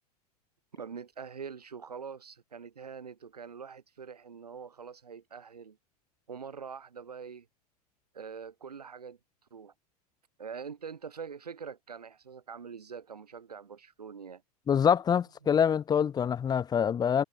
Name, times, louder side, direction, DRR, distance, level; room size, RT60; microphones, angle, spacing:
voice 1, 0.7-5.8 6.3-7.5 8.1-9.2 9.5-9.7 10.4-14.4 15.4-15.5, right 6 dB, 70° right, 6.9 m, -44 dB
voice 2, 14.7-17.2, left 8 dB, 20° left, 2.3 m, -25 dB
figure-of-eight pair, 95°, 21 cm